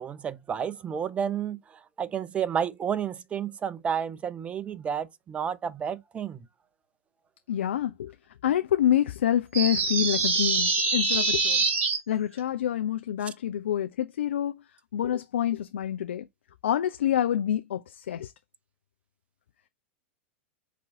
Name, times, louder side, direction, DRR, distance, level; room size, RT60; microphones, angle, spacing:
voice 1, 0.0-1.6 2.0-6.4 13.3-13.4, right 8 dB, 20° right, 0.4 m, -31 dB
voice 2, 7.5-8.1 8.4-11.6 12.1-14.6 14.9-16.3 16.6-18.3, left 10 dB, 65° left, 0.4 m, -27 dB
sound 1, 9.5-12.0, right 4 dB, 40° right, 2.2 m, -25 dB
5.0 x 2.8 x 3.5 m
figure-of-eight pair, 95°, 7 cm